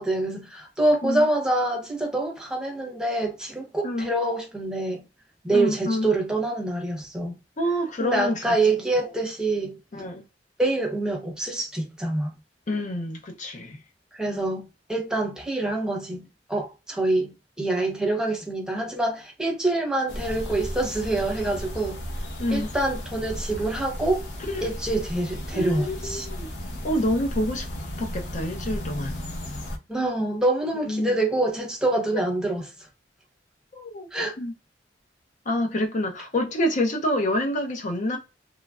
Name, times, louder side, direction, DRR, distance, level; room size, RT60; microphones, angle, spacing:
voice 1, 0.0-5.0 5.4-7.3 8.0-9.8 10.6-12.3 14.1-22.0 22.5-24.3 24.6-26.3 29.9-32.6 34.1-34.4, right 2 dB, 5° right, 0.8 m, -26 dB
voice 2, 5.5-6.1 7.6-9.1 9.9-10.2 12.7-13.8 14.2-14.4 22.4-22.7 24.5-24.7 25.5-26.5 26.8-27.7 28.0-29.2 30.9-31.3 33.7-34.1 34.4-34.5 35.5-38.2, left 1 dB, 45° left, 0.5 m, -27 dB
sound 1, 20.1-29.8, equal, 70° left, 0.9 m, -34 dB
3.0 x 2.3 x 2.3 m
head